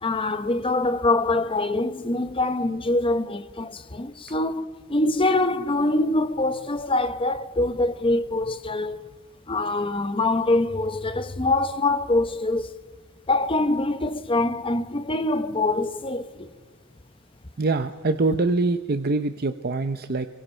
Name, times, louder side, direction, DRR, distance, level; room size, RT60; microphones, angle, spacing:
voice 1, 0.0-9.0 9.5-12.7 13.3-16.5, left 2 dB, 25° left, 0.9 m, -24 dB
voice 2, 17.6-20.3, right 3 dB, 50° right, 0.7 m, -24 dB
30.0 x 22.5 x 4.5 m
head